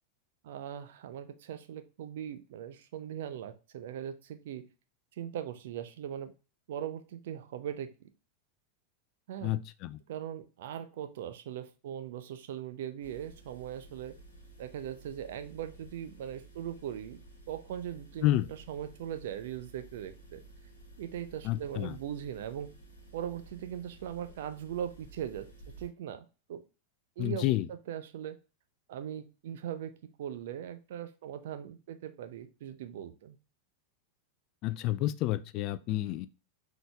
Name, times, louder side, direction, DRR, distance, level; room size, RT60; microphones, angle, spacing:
voice 1, 0.4-4.7 5.2-6.3 6.7-8.1 9.3-9.6 10.1-14.1 14.6-17.2 17.5-18.3 18.7-20.4 21.0-22.7 23.1-26.6 27.2-27.5 27.9-28.4 28.9-33.4, right 10 dB, 55° right, 10 dB, 0.6 m, -40 dB
voice 2, 9.4-10.0 18.2-18.5 21.4-22.0 27.2-27.7 34.6-36.3, left 15 dB, 40° left, 14 dB, 0.3 m, -30 dB
sound 1, 13.0-25.9, right 2 dB, 70° left, 1.5 m, -54 dB
5.1 x 3.9 x 2.3 m, 0.32 s
figure-of-eight pair, 90°, 0 cm